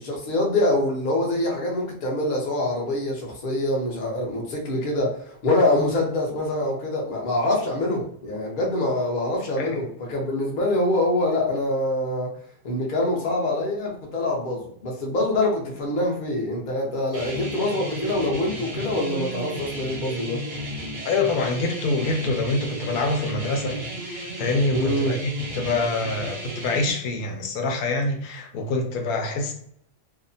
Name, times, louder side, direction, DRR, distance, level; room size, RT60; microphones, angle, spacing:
voice 1, 0.0-12.3 12.6-20.4 24.7-25.2, left 1 dB, 50° left, -1 dB, 0.7 m, -25 dB
sound 1, 17.1-26.9, equal, 55° right, 0.5 m, -33 dB
voice 2, 21.0-29.5, left 2 dB, 85° left, 4 dB, 1.1 m, -26 dB
2.7 x 2.1 x 2.5 m, 0.67 s
omnidirectional pair, 1.5 m